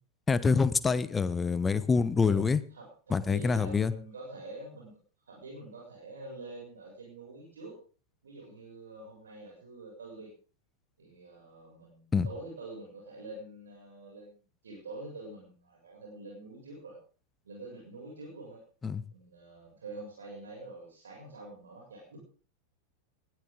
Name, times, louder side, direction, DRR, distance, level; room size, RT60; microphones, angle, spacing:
voice 1, 0.3-2.6 3.1-3.9 12.1-12.3 18.8-19.0, left 5 dB, 15° left, 16 dB, 1.1 m, -26 dB
voice 2, 2.7-4.9 5.2-7.8 8.2-10.3 11.0-17.0 17.4-18.6 19.1-22.2, right 2 dB, 70° right, -1 dB, 7.1 m, -46 dB
20.0 x 15.0 x 3.8 m, 0.40 s
figure-of-eight pair, 90°, 0 cm